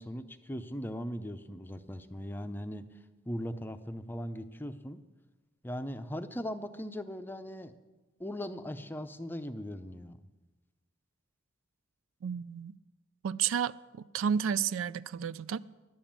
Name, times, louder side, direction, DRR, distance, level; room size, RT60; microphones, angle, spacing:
voice 1, 0.0-2.9 3.3-5.0 5.6-7.7 8.2-10.2, equal, 10° left, 0.5 m, -39 dB
voice 2, 12.2-12.8 13.2-13.7 14.1-15.6, right 7 dB, 85° right, 0.3 m, -31 dB
11.0 x 8.9 x 7.4 m
head